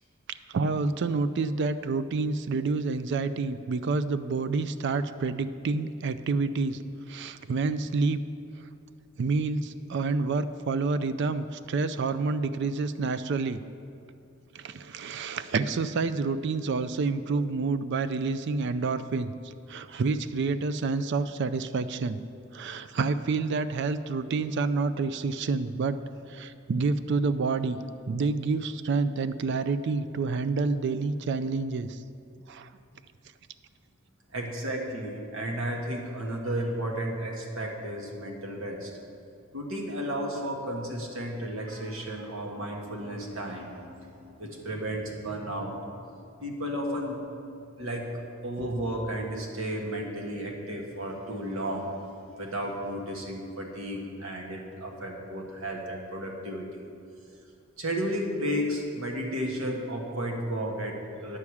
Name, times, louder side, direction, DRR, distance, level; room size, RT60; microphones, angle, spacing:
voice 1, 0.5-6.8 7.1-8.2 9.2-13.6 14.5-19.3 19.7-22.2 22.5-26.0 26.3-27.8 28.1-32.0 32.5-32.7, right 4 dB, 60° right, 13 dB, 0.4 m, -28 dB
voice 2, 34.3-38.9 39.5-45.8 46.4-47.2 47.8-51.9 52.4-56.9 57.8-61.4, equal, 75° right, 0 dB, 1.4 m, -33 dB
9.7 x 4.8 x 7.1 m, 2.5 s
head